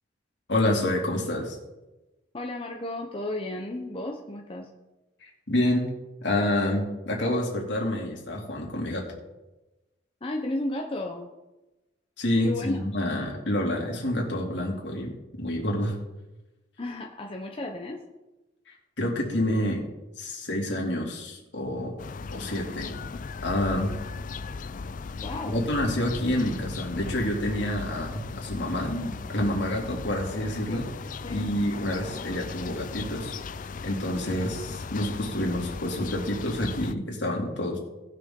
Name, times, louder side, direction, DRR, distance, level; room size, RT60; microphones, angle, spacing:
voice 1, 0.5-1.6 5.2-5.9 6.2-9.0 12.2-15.9 19.0-19.8 20.2-22.0 22.3-22.9 23.4-23.9 25.4-30.9 31.3-33.3 33.8-37.8, left 1 dB, 70° left, -1 dB, 2.7 m, -28 dB
voice 2, 2.3-4.7 10.2-11.3 12.4-12.8 16.8-18.1 25.2-25.8 31.2-31.5, left 1 dB, 30° left, 1 dB, 0.8 m, -33 dB
sound 1, 22.0-36.9, left 4 dB, 45° left, 0.4 m, -37 dB
18.5 x 6.5 x 3.8 m, 1.0 s
head